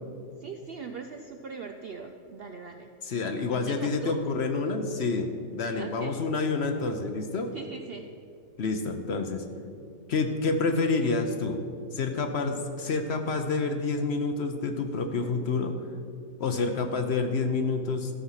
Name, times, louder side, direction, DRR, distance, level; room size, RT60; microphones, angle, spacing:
voice 1, 0.4-2.9 3.5-4.2 5.8-6.2 7.5-8.1, right 5 dB, 65° right, 5 dB, 0.6 m, -41 dB
voice 2, 3.0-7.5 8.6-9.4 10.1-11.6 11.9-15.8 16.4-18.1, left 3 dB, 55° left, 6 dB, 0.8 m, -28 dB
13.5 x 6.1 x 5.6 m, 2.5 s
omnidirectional pair, 1.5 m